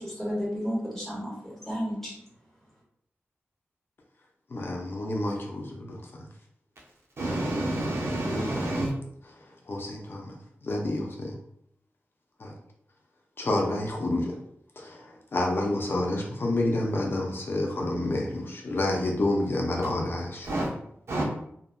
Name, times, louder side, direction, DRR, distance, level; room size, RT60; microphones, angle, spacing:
voice 1, 0.0-2.1, equal, 10° left, -6 dB, 1.4 m, -32 dB
voice 2, 4.5-6.3 9.2-10.4 10.6-11.4 12.4-12.5 13.4-14.4 14.8-20.5, left 1 dB, 55° left, 0 dB, 0.5 m, -29 dB
voice 3, 7.2-8.9 20.5-20.7 21.1-21.2, right 1 dB, 70° right, -3 dB, 0.8 m, -28 dB
2.7 x 2.5 x 2.2 m, 0.71 s
wide cardioid pair, 65°, 5 cm